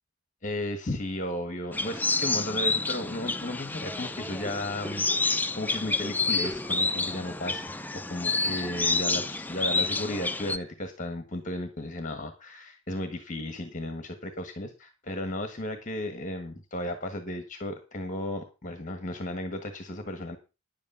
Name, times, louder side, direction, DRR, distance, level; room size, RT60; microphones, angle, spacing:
voice 1, 0.4-20.4, left 1 dB, 40° left, 7 dB, 1.5 m, -34 dB
sound 1, 1.7-10.6, left 3 dB, 10° left, 0.6 m, -29 dB
10.5 x 8.6 x 5.6 m, 0.30 s
head